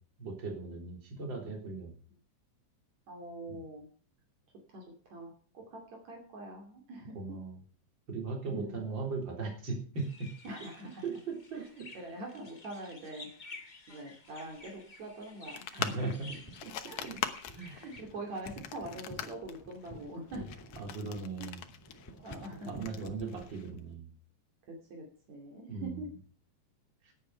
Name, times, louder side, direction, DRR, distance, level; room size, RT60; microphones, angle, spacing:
voice 1, 0.2-1.9 3.5-3.6 7.1-7.5 8.1-10.3 11.0-11.7 15.8-16.3 16.6-16.7 17.6-17.7 20.8-21.6 22.7-24.1 25.7-26.0 27.0-27.1, right 4 dB, 35° right, 1 dB, 4.2 m, -38 dB
voice 2, 3.1-3.9 4.7-7.4 8.5-8.9 10.4-11.1 11.5-11.7 11.9-13.3 13.9-16.4 16.9-17.1 17.6-20.5 22.2-22.7 24.7-26.1, right 1 dB, 65° right, 1 dB, 4.0 m, -44 dB
sound 1, 9.9-18.0, left 3 dB, 35° left, 0.7 m, -52 dB
sound 2, 15.6-23.8, left 10 dB, 70° left, 2.3 m, -42 dB
sound 3, 16.3-23.4, left 1 dB, 10° left, 1.4 m, -51 dB
17.0 x 8.6 x 5.7 m, 0.43 s
omnidirectional pair, 3.5 m